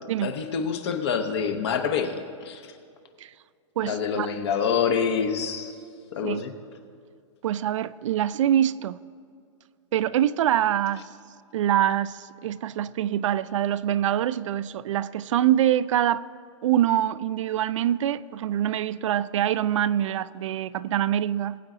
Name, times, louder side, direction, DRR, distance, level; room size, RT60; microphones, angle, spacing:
voice 1, 0.2-2.7 3.8-5.7 6.1-6.5, left 6 dB, 55° left, 0.9 m, -27 dB
voice 2, 3.8-4.3 6.2-6.4 7.4-9.0 9.9-11.0 11.5-16.3 16.6-21.6, right 11 dB, 70° right, 0.4 m, -24 dB
20.0 x 8.4 x 3.8 m
supercardioid pair, 165°, 16 cm